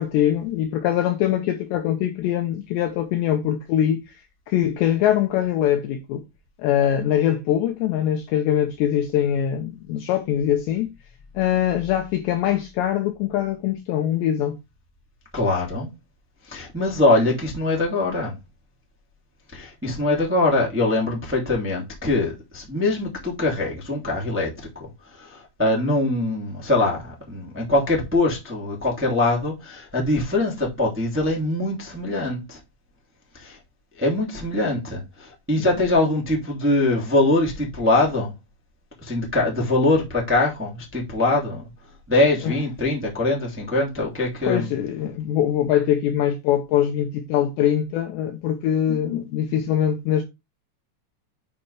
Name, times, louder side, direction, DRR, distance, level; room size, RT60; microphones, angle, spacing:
voice 1, 0.0-4.2 4.5-6.2 6.6-10.9 11.4-14.6 35.7-35.8 42.4-42.5 44.5-50.2, left 10 dB, 80° left, 2.6 m, -22 dB
voice 2, 15.3-15.9 16.5-18.3 19.5-24.9 25.1-32.6 33.3-33.6 34.0-38.3 39.0-41.6 42.1-44.7, left 2 dB, 10° right, 0.6 m, -23 dB
8.7 x 5.4 x 3.3 m
omnidirectional pair, 5.9 m